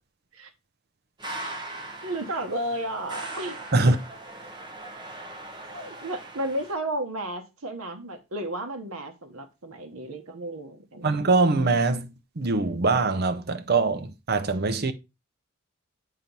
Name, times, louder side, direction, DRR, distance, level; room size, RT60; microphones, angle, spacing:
sound 1, 1.2-6.7, right 2 dB, 20° right, 1.0 m, -40 dB
voice 1, 1.3-1.6 2.0-3.6 5.6-11.1, right 1 dB, 75° right, 0.9 m, -33 dB
voice 2, 11.0-12.1 12.4-14.9, right 3 dB, 45° right, 0.6 m, -23 dB
7.6 x 2.9 x 5.2 m
head